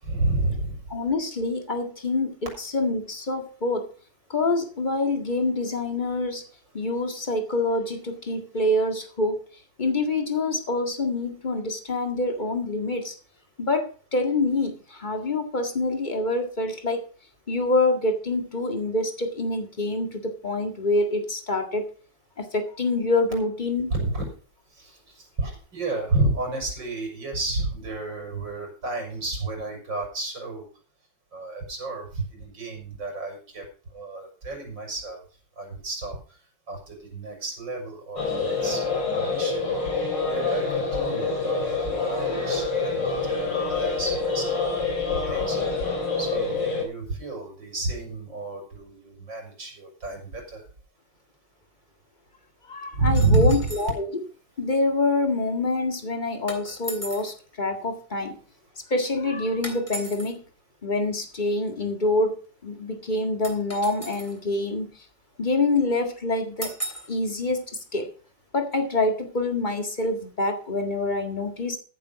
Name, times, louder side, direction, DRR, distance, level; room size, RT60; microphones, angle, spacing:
voice 1, 0.0-0.9 23.9-24.3 24.8-30.7 31.3-33.6 33.9-35.2 35.6-36.2 36.7-38.8 39.1-39.6 40.2-45.6 46.2-50.6 52.9-53.7, right 2 dB, 85° right, 1 dB, 6.1 m, -30 dB
voice 2, 0.9-3.9 4.3-6.4 6.7-9.4 9.8-13.1 13.6-17.0 17.5-21.8 22.4-23.9 52.7-54.1 54.6-58.4 58.9-60.4 60.8-62.4 62.6-64.9 65.4-66.7 67.1-67.6 67.9-68.1 68.5-71.8, left 2 dB, 25° left, 6 dB, 1.9 m, -26 dB
sound 1, 38.2-46.8, left 4 dB, 75° left, 4.7 m, -26 dB
sound 2, 53.1-54.0 56.5-57.3 59.6-60.3 63.4-64.4 66.6-67.1, right 1 dB, 5° left, 3.3 m, -37 dB
14.5 x 7.5 x 5.2 m, 0.40 s
omnidirectional pair, 2.0 m